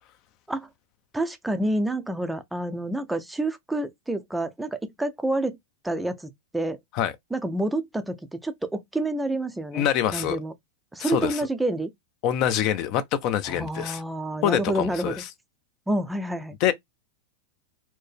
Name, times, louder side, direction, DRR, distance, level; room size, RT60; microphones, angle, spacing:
voice 1, 1.1-5.6 5.8-6.8 7.3-9.8 10.1-10.5 10.9-11.9 13.5-15.1 15.9-16.6, right 1 dB, 5° right, 0.5 m, -28 dB
voice 2, 9.7-10.4 11.0-11.5 12.2-14.0 14.4-15.3 16.6-16.7, left 10 dB, 45° left, 0.6 m, -25 dB
4.3 x 2.0 x 3.3 m
supercardioid pair, 140°, 0 cm